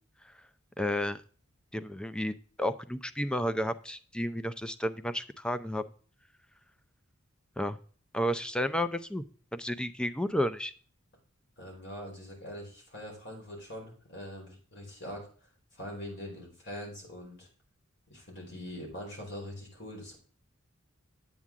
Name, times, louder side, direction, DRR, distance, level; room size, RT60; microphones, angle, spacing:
voice 1, 0.8-1.2 1.7-5.8 7.6-7.8 8.1-9.2 9.5-10.7, equal, 5° left, 11 dB, 0.5 m, -32 dB
voice 2, 11.6-15.3 15.7-17.5 18.1-20.2, equal, 55° left, 0 dB, 4.7 m, -43 dB
8.9 x 8.4 x 3.6 m, 0.42 s
head